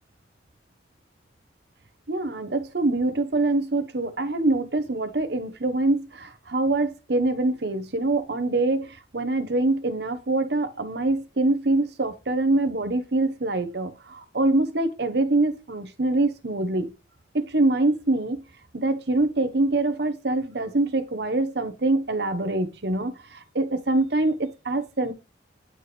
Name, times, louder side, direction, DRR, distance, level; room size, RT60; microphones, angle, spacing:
voice 1, 2.1-16.9 17.3-18.4 18.7-25.1, right 2 dB, 60° right, 1.0 m, -24 dB
9.6 x 4.4 x 3.3 m
head